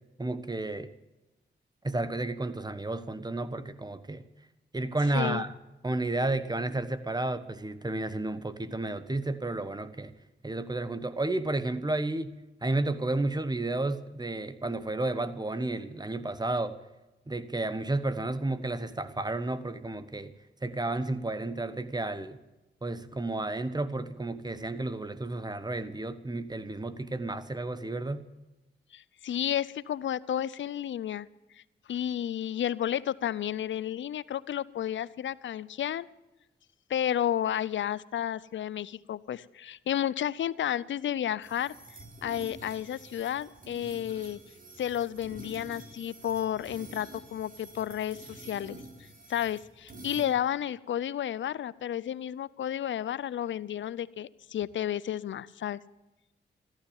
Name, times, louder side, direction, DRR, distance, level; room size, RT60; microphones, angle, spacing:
voice 1, 0.2-0.9 1.8-4.2 4.7-5.6 5.8-10.1 10.4-16.8 17.3-20.3 20.6-22.4 22.8-28.2, right 2 dB, 20° right, 13 dB, 1.3 m, -32 dB
voice 2, 5.1-5.4 28.9-31.3 31.9-36.1 36.9-41.7 42.2-44.4 44.8-48.8 49.3-55.8, left 10 dB, 75° left, 20 dB, 0.6 m, -32 dB
sound 1, 41.4-50.3, right 2 dB, 45° right, 4.0 m, -48 dB
14.0 x 12.5 x 7.2 m, 1.0 s
cardioid pair, 50°, 20 cm